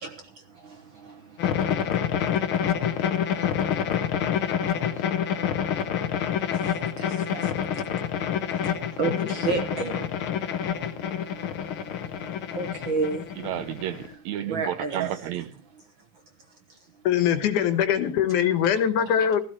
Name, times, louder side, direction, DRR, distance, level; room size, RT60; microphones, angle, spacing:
voice 1, 0.0-13.3 14.4-15.2 16.7-16.8, right 4 dB, 55° right, 1.4 m, -36 dB
sound 1, 1.4-14.1, left 8 dB, 60° left, 1.4 m, -27 dB
voice 2, 9.2-9.6 17.1-19.4, left 9 dB, 80° left, 2.7 m, -23 dB
voice 3, 13.4-15.5, right 12 dB, 75° right, 1.9 m, -31 dB
16.0 x 14.0 x 3.0 m
omnidirectional pair, 3.5 m